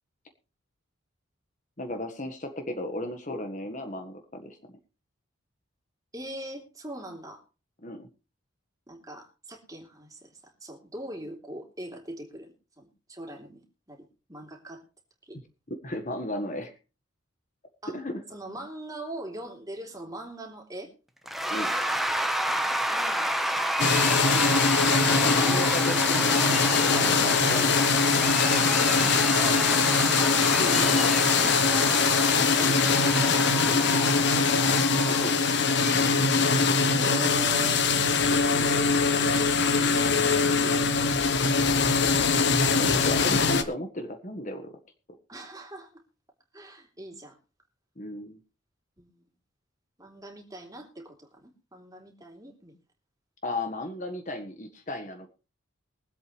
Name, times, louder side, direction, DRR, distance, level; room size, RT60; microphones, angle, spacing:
voice 1, 1.8-4.6 7.8-8.1 15.8-16.7 17.9-18.2 21.5-21.8 25.0-27.8 30.6-31.7 35.0-35.3 42.7-44.8 48.0-48.4 53.4-55.3, left 1 dB, 35° left, 6 dB, 1.5 m, -35 dB
voice 2, 6.1-7.4 8.9-14.8 15.2-15.4 17.8-18.0 18.3-20.9 22.5-23.5 29.0-31.2 32.6-34.3 36.1-36.3 36.8-37.8 38.3-39.6 39.9-40.9 45.3-46.0 46.5-47.4 49.0-49.2 50.0-52.7, right 1 dB, 15° right, 2 dB, 3.0 m, -41 dB
Cheering / Applause / Crowd, 21.3-36.9, right 1 dB, ahead, 1.0 m, -30 dB
sound 1, 23.8-43.6, left 4 dB, 55° left, 1.2 m, -22 dB
23.5 x 8.2 x 3.2 m, 0.32 s
head